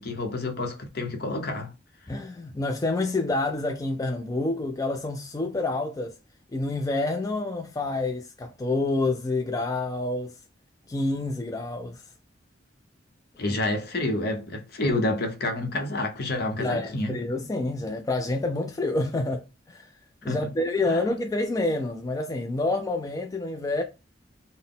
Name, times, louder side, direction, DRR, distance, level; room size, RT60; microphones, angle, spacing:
voice 1, 0.0-1.7 13.4-17.2 20.3-20.5 20.9-21.0, left 2 dB, 60° left, 0.8 m, -29 dB
voice 2, 2.1-6.1 6.5-10.3 10.9-12.0 13.5-13.6 16.6-19.9 20.2-23.8, left 2 dB, 20° left, 0.3 m, -28 dB
3.8 x 2.1 x 3.6 m
head